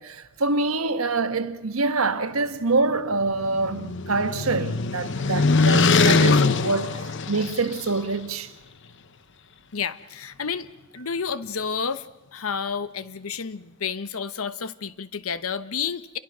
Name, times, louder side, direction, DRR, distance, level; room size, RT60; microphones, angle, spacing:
voice 1, 0.0-8.5, right 3 dB, 85° right, 1.3 m, -26 dB
sound 1, 3.1-7.9, left 4 dB, 60° left, 0.9 m, -22 dB
voice 2, 9.7-10.7 10.9-12.1 12.3-16.2, left 6 dB, 85° left, 1.0 m, -30 dB
28.5 x 22.5 x 6.2 m
head